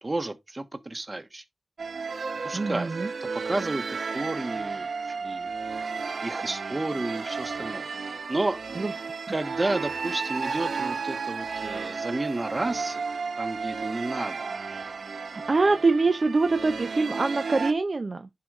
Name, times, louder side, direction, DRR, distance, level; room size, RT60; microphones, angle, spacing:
voice 1, 0.0-1.4 2.4-2.9 3.2-5.5 6.2-8.6 9.3-13.0 13.4-14.5, right 2 dB, 30° right, 1.2 m, -32 dB
sound 1, 1.8-17.7, right 5 dB, 75° right, 1.0 m, -33 dB
voice 2, 2.5-3.1 8.8-8.9 15.3-18.3, right 3 dB, 45° right, 0.7 m, -24 dB
10.5 x 4.8 x 3.6 m
wide cardioid pair, 85°, 0 cm